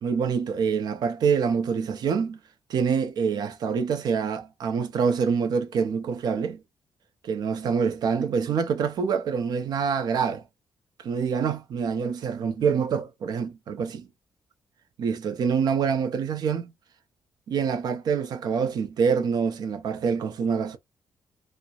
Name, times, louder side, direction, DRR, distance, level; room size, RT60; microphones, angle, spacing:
voice 1, 0.0-2.4 2.7-6.6 7.2-10.4 11.0-14.1 15.0-16.7 17.5-20.8, right 6 dB, 65° right, 0.5 m, -26 dB
2.7 x 2.0 x 2.3 m
cardioid pair, 130°, 7 cm